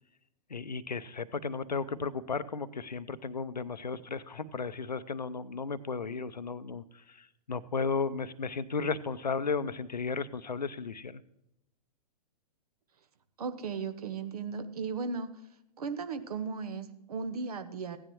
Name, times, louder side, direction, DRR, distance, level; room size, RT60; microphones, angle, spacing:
voice 1, 0.5-11.2, left 4 dB, 85° left, 14 dB, 0.7 m, -34 dB
voice 2, 13.4-15.3 15.8-18.0, right 5 dB, 65° right, 10 dB, 1.1 m, -36 dB
16.0 x 10.0 x 3.0 m, 0.83 s
figure-of-eight pair, 115°, 21 cm